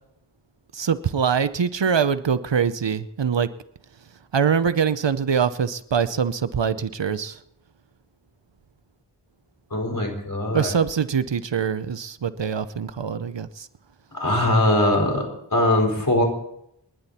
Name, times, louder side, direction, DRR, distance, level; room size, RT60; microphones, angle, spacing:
voice 1, 0.7-3.5 4.3-7.4 10.5-13.7, right 7 dB, 80° right, 14 dB, 0.8 m, -23 dB
voice 2, 9.7-10.7 14.1-16.2, left 1 dB, 50° left, 1 dB, 5.1 m, -21 dB
28.0 x 11.0 x 4.3 m, 0.76 s
wide cardioid pair, 40°, 43 cm